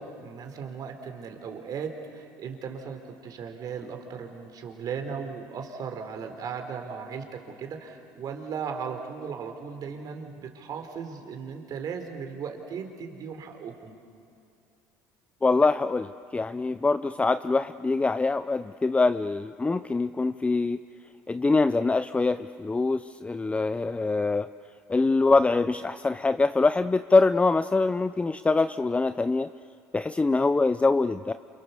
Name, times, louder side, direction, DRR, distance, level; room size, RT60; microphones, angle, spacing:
voice 1, 0.0-14.0, right 6 dB, 55° right, 5 dB, 4.1 m, -37 dB
voice 2, 15.4-20.8 21.3-24.5 24.9-29.5 29.9-31.3, left 3 dB, 15° left, 12 dB, 0.6 m, -24 dB
29.0 x 28.5 x 7.1 m, 2.4 s
supercardioid pair, 80°, 8 cm